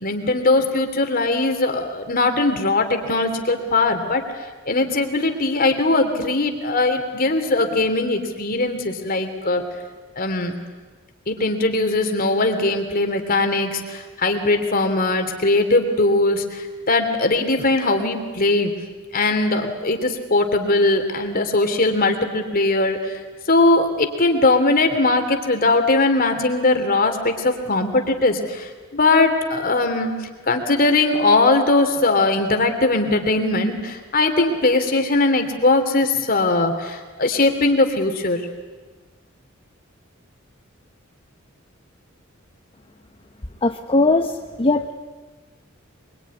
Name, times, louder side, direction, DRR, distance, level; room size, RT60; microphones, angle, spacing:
voice 1, 0.0-4.2 4.6-9.6 10.2-10.5 11.3-18.7 19.1-30.1 30.5-38.4, left 2 dB, 45° left, 6 dB, 3.1 m, -20 dB
voice 2, 43.6-44.9, left 2 dB, 30° left, 4 dB, 1.0 m, -19 dB
24.5 x 23.0 x 9.7 m, 1.3 s
head